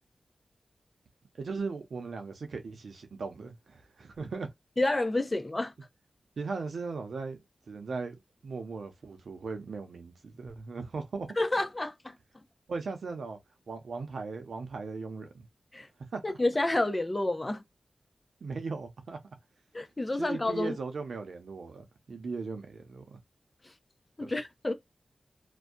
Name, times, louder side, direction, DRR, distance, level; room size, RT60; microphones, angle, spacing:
voice 1, 1.4-4.5 6.4-7.4 7.7-11.3 12.7-13.4 13.7-15.5 16.1-16.4 18.4-19.2 20.2-23.2 24.2-24.3, right 4 dB, 85° right, 0.7 m, -38 dB
voice 2, 4.8-5.7 11.4-12.1 15.7-15.9 16.2-17.6 19.7-20.8 24.2-24.7, left 2 dB, 30° left, 0.6 m, -29 dB
2.6 x 2.2 x 2.3 m
cardioid pair, 50°, 0 cm